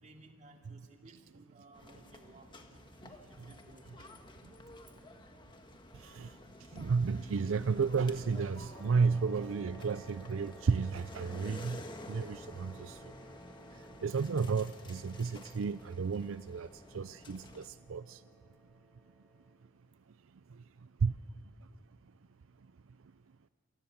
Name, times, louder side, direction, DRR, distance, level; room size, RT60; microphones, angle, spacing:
voice 1, 0.0-2.9 3.3-3.9 5.5-5.6, right 2 dB, 35° right, 2 dB, 2.6 m, -59 dB
sound 1, 1.7-17.7, left 1 dB, 25° left, 1.6 m, -51 dB
voice 2, 6.0-6.3 6.7-11.8 12.1-13.0 14.0-16.7 16.9-18.2 21.0-21.1, right 5 dB, 80° right, 14 dB, 0.5 m, -32 dB
sound 2, 8.7-19.6, equal, 5° left, 2.9 m, -57 dB
27.5 x 19.5 x 7.1 m, 2.5 s
head